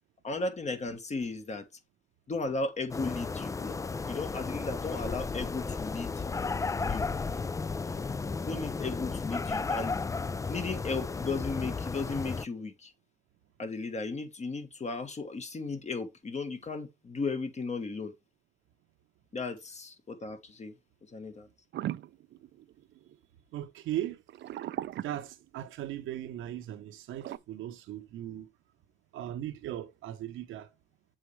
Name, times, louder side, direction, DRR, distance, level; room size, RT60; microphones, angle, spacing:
voice 1, 0.2-1.7 2.3-3.8 4.1-6.2 6.8-7.1 8.4-9.9 10.5-12.9 13.6-18.1 19.3-20.7 21.1-21.5, left 3 dB, 35° left, 1.3 m, -35 dB
sound 1, 2.9-12.5, left 4 dB, 15° left, 0.3 m, -34 dB
sound 2, 21.7-23.2 24.3-25.9 27.2-27.4, right 13 dB, 65° right, 0.5 m, -38 dB
voice 2, 23.5-24.2 25.0-28.5 29.1-30.7, right 12 dB, 85° right, 1.0 m, -38 dB
7.6 x 4.3 x 3.2 m
cardioid pair, 90°, 20 cm